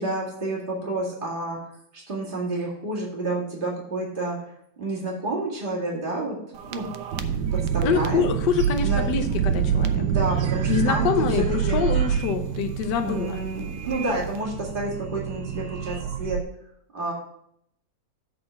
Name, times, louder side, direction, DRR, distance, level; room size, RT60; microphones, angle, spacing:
voice 1, 0.0-1.6 1.9-6.4 6.6-8.3 8.8-9.0 10.0-11.8 13.0-16.4 16.9-17.1, right 2 dB, 30° right, -4 dB, 2.3 m, -30 dB
sound 1, 6.5-16.4, right 8 dB, 75° right, 1.2 m, -27 dB
voice 2, 7.8-10.0 10.7-13.4, left 7 dB, 70° left, 6 dB, 1.4 m, -25 dB
7.7 x 4.2 x 6.9 m, 0.73 s
omnidirectional pair, 2.0 m